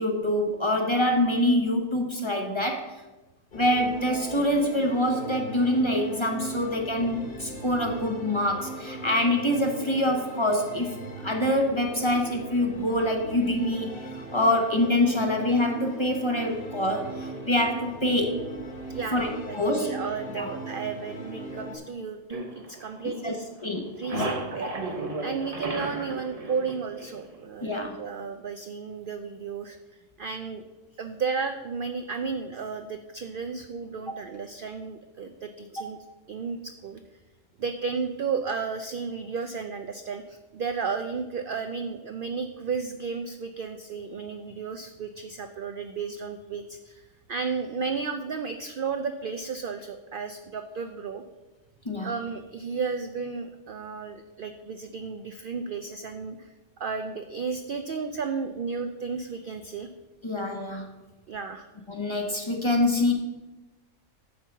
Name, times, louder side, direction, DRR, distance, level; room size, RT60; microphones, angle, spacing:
voice 1, 0.0-2.9 3.5-10.9 11.2-13.9 14.3-18.5 19.1-19.9 20.3-20.6 23.2-23.3 23.6-24.4 27.6-27.9 35.8-35.9 51.8-52.1 60.2-60.9 61.9-63.1, left 1 dB, 25° left, 2 dB, 0.8 m, -25 dB
sound 1, 3.5-21.8, right 1 dB, 40° left, 1.7 m, -39 dB
voice 2, 18.9-23.5 24.0-24.7 25.2-29.8 30.2-30.6 31.0-36.0 36.3-37.0 37.6-51.2 52.0-56.5 56.8-59.9 61.3-61.7, right 5 dB, 75° right, 7 dB, 0.4 m, -33 dB
sound 2, 22.3-23.5 23.7-27.4, right 2 dB, 30° right, 0.9 m, -34 dB
9.3 x 4.6 x 7.0 m, 1.1 s
omnidirectional pair, 1.5 m